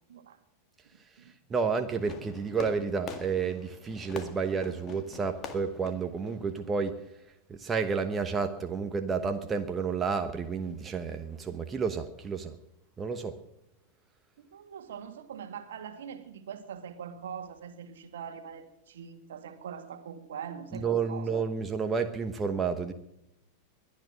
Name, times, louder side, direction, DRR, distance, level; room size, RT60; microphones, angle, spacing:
voice 1, 1.5-6.9 7.5-12.5 13.0-13.3 20.7-22.9, right 5 dB, 20° right, 7 dB, 1.1 m, -30 dB
Fireworks, 2.0-7.0, left 6 dB, 30° left, 1.9 m, -45 dB
voice 2, 14.4-21.4, right 7 dB, 60° right, 8 dB, 1.8 m, -42 dB
21.5 x 10.5 x 6.3 m, 0.85 s
figure-of-eight pair, 90°, 0 cm